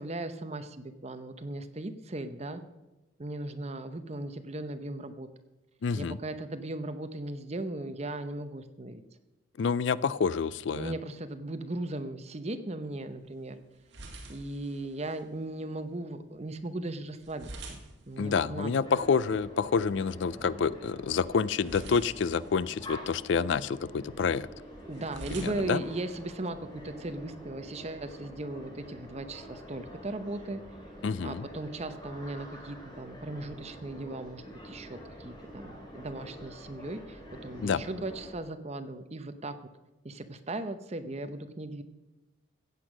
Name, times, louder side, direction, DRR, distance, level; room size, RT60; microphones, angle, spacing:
voice 1, 0.0-2.6 3.2-5.3 6.0-9.0 10.7-13.6 14.3-17.8 18.1-18.9 24.9-30.6 31.2-39.5 40.0-41.8, right 2 dB, 35° right, 9 dB, 0.8 m, -37 dB
voice 2, 5.8-6.2 9.6-10.9 18.2-24.5 25.4-25.8 31.0-31.5 37.6-37.8, left 5 dB, 65° left, 19 dB, 0.4 m, -28 dB
sound 1, 12.8-26.8, right 2 dB, 60° right, 2.1 m, -51 dB
sound 2, 18.8-38.3, equal, 20° left, 3.0 m, -47 dB
15.0 x 8.2 x 6.1 m, 1.1 s
head